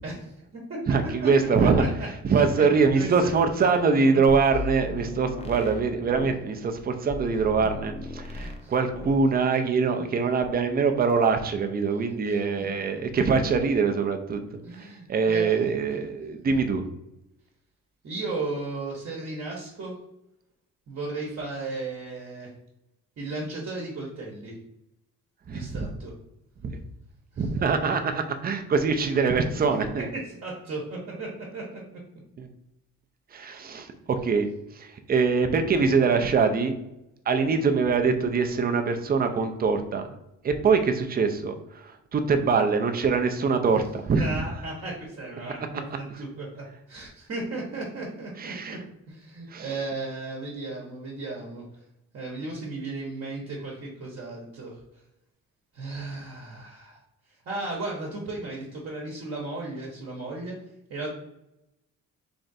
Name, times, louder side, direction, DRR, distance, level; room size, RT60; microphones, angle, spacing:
voice 1, 0.0-0.8 1.0-1.9 2.3-2.7 3.0-3.1 3.5-3.7 7.6-7.7 8.4-8.7 9.9-10.1 12.2-12.7 14.6-16.0 18.0-19.9 20.9-22.5 23.2-24.6 25.5-26.1 27.3-27.4 30.1-32.0 43.7-43.8 44.2-48.8 49.1-51.6 52.1-54.8 55.7-57.0 57.5-60.5 60.9-61.1, right 2 dB, 50° right, -3 dB, 1.0 m, -35 dB
voice 2, 0.9-1.8 2.3-14.4 15.1-16.8 25.5-25.9 26.6-26.7 27.4-30.1 32.4-32.5 33.3-34.5 34.8-36.8 37.3-40.1 40.4-41.5 41.8-44.3 48.4-48.8 49.5-49.7, right 5 dB, 30° right, 7 dB, 0.5 m, -23 dB
sound 1, 4.3-6.4 7.1-8.7 8.9-9.3, left 2 dB, 20° left, 0.6 m, -36 dB
3.4 x 2.5 x 4.0 m, 0.87 s
cardioid pair, 90°, 30 cm